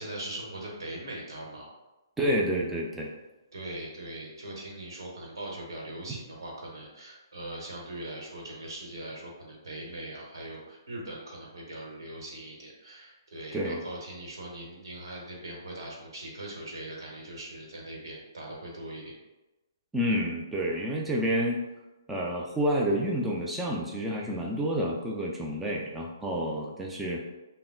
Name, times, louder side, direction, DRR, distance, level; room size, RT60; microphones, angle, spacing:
voice 1, 0.0-1.7 3.5-19.1, right 1 dB, 80° right, -2 dB, 1.0 m, -41 dB
voice 2, 2.2-3.1 6.1-6.2 13.5-13.8 19.9-21.6 22.1-27.2, equal, 5° right, -3 dB, 0.4 m, -29 dB
3.5 x 2.1 x 2.3 m, 1.0 s
hypercardioid pair, 145°, 2 cm